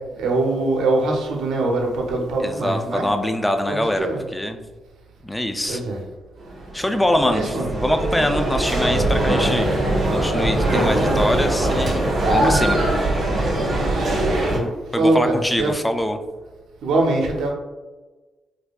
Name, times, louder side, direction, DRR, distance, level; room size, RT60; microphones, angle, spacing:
voice 1, 0.1-3.1 3.7-4.2 5.7-6.0 7.2-7.7 10.6-11.2 12.3-12.8 13.8-14.7 15.0-15.7 16.8-17.5, right 2 dB, 85° right, 1 dB, 0.7 m, -23 dB
voice 2, 2.4-4.6 5.2-5.8 6.7-9.7 10.1-12.8 14.9-16.2, left 1 dB, 5° left, 7 dB, 0.4 m, -23 dB
sound 1, 6.4-14.6, right 1 dB, 55° right, 1.5 m, -21 dB
4.3 x 2.6 x 2.3 m, 1.2 s
cardioid pair, 95°, 0 cm